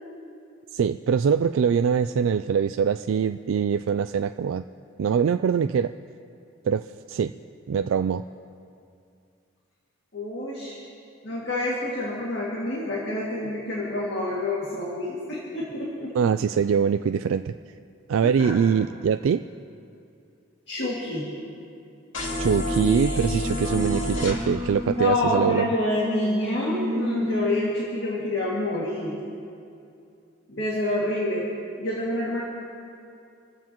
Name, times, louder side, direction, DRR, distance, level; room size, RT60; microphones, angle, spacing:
voice 1, 0.7-4.6 5.0-5.9 6.6-7.3 7.7-8.2 16.1-17.5 18.1-19.4 22.4-25.7, right 7 dB, 80° right, 9 dB, 0.3 m, -23 dB
voice 2, 10.1-10.8 11.2-16.1 18.4-18.6 20.7-21.3 25.0-29.2 30.5-31.5 31.8-32.4, left 1 dB, 55° left, -5 dB, 2.3 m, -27 dB
sound 1, 22.1-24.4, left 1 dB, 80° left, 2.6 m, -27 dB
Singing, 22.9-27.8, left 1 dB, 35° right, 1.8 m, -32 dB
27.0 x 14.5 x 3.0 m, 2.5 s
head